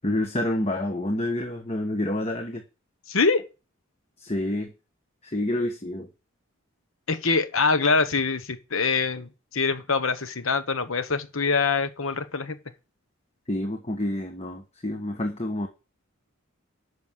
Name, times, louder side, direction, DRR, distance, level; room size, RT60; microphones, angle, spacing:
voice 1, 0.0-2.6 4.2-4.7 5.2-6.1 13.5-15.7, left 1 dB, 30° left, 1.3 m, -28 dB
voice 2, 3.1-3.4 7.1-12.6, left 4 dB, 70° left, 1.1 m, -24 dB
11.0 x 6.3 x 7.4 m
head